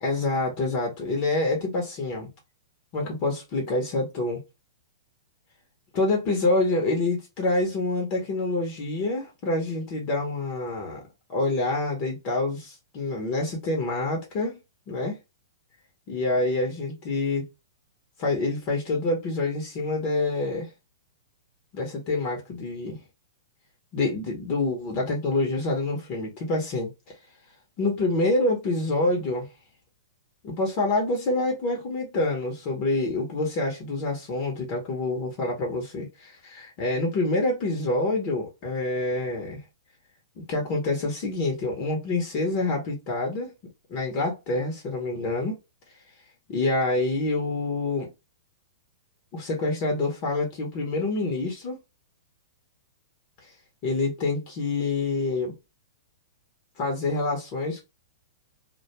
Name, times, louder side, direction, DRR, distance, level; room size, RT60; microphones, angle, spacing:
voice 1, 0.0-2.3 2.9-4.4 5.9-11.0 11.3-14.6 14.9-15.2 16.1-17.5 18.2-20.7 21.7-23.0 23.9-26.9 27.8-29.5 30.4-39.6 40.5-43.5 43.9-45.6 46.5-48.1 49.3-51.8 53.8-55.5 56.8-57.8, left 2 dB, 40° left, 0.8 m, -27 dB
2.2 x 2.2 x 2.8 m
hypercardioid pair, 135°, 2 cm